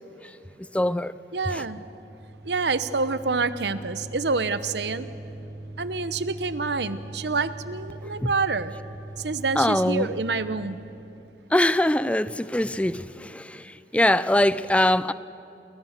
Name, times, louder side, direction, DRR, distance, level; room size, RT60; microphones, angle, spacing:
voice 1, 0.2-1.2 1.5-1.6 8.2-8.3 9.6-10.1 11.5-15.1, left 1 dB, 5° left, 0.4 m, -23 dB
sound 1, 1.3-11.1, right 1 dB, 20° right, 6.7 m, -41 dB
voice 2, 1.3-1.8 2.4-5.1 5.8-8.7 9.2-10.8, right 4 dB, 80° right, 1.0 m, -27 dB
28.0 x 21.5 x 6.6 m
head